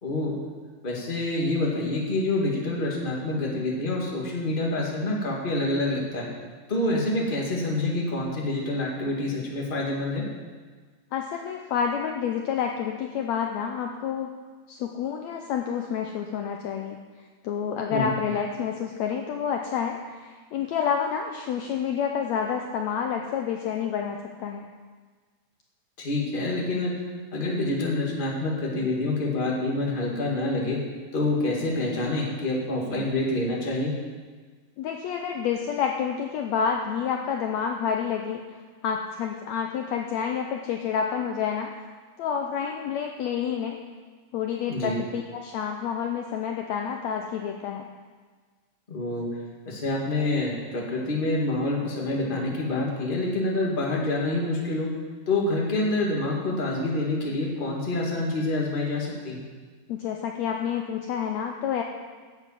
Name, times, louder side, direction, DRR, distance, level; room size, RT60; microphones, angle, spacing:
voice 1, 0.0-0.3 0.8-6.3 6.7-10.2 17.9-18.1 26.0-27.0 27.3-30.8 31.1-33.9 44.7-45.0 48.9-49.3 49.6-54.9 55.3-59.4, left 2 dB, 20° left, -2 dB, 1.5 m, -27 dB
voice 2, 11.1-14.3 14.7-17.0 17.4-24.7 34.8-38.4 38.8-41.7 42.2-43.8 44.3-47.9 59.9-61.8, left 7 dB, 80° left, 3 dB, 1.6 m, -29 dB
10.5 x 8.2 x 7.4 m, 1.5 s
omnidirectional pair, 3.9 m